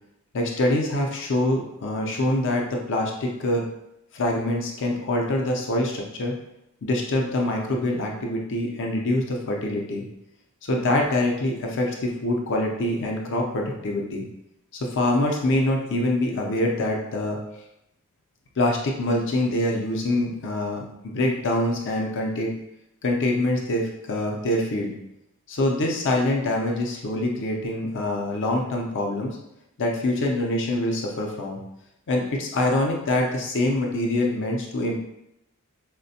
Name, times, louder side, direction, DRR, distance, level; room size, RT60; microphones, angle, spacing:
voice 1, 0.3-3.7 4.1-6.3 6.8-10.0 10.6-14.2 14.7-17.4 18.6-22.5 23.0-24.9 25.5-29.4 29.8-31.6 32.1-34.9, left 1 dB, 60° left, 0 dB, 0.5 m, -25 dB
4.1 x 2.2 x 2.7 m, 0.85 s
head